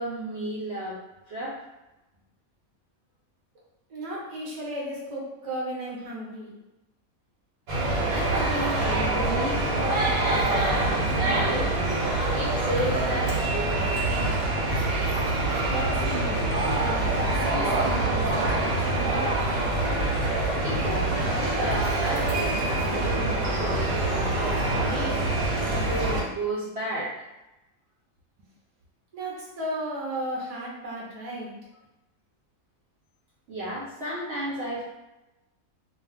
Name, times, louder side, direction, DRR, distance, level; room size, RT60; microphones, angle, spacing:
voice 1, 0.0-1.6 8.1-11.8 12.3-14.5 20.6-25.2 25.7-27.1 33.5-34.8, right 1 dB, 65° right, -6 dB, 0.7 m, -33 dB
voice 2, 3.9-6.5 15.7-16.4 16.7-19.4 29.1-31.5, right 1 dB, 35° right, -5 dB, 0.7 m, -34 dB
sound 1, 7.7-26.2, right 2 dB, 90° right, 1.2 m, -25 dB
2.3 x 2.3 x 3.4 m, 0.98 s
omnidirectional pair, 1.5 m